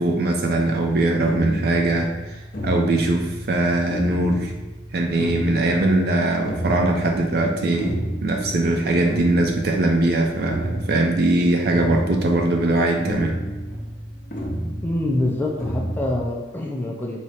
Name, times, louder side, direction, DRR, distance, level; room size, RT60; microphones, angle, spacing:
voice 1, 0.0-4.5 4.9-13.4, right 2 dB, 55° right, 2 dB, 0.4 m, -21 dB
sound 1, 0.6-16.3, right 1 dB, 45° left, 0.7 m, -31 dB
voice 2, 14.8-17.2, left 1 dB, 10° left, -1 dB, 0.4 m, -25 dB
4.7 x 2.0 x 4.2 m, 1.1 s
head